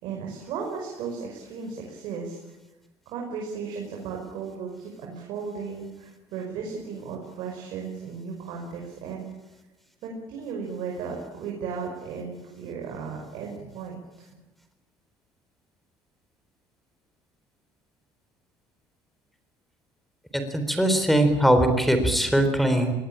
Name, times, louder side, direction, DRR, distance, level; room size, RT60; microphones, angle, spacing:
voice 1, 0.0-2.4 3.1-9.3 10.0-14.3, right 5 dB, 75° right, 0 dB, 5.5 m, -35 dB
voice 2, 20.3-22.9, right 1 dB, ahead, 7 dB, 3.8 m, -21 dB
23.0 x 18.5 x 9.0 m, 1.0 s
cardioid pair, 110°, 8 cm